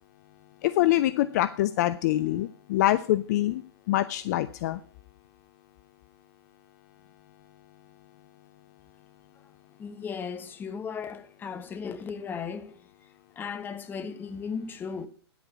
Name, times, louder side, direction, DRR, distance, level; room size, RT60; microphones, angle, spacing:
voice 1, 0.6-4.8, left 14 dB, 40° left, 0.5 m, -25 dB
voice 2, 9.8-12.8 13.4-15.1, left 6 dB, 15° left, 0.9 m, -36 dB
10.0 x 8.2 x 6.0 m
figure-of-eight pair, 110°, 14 cm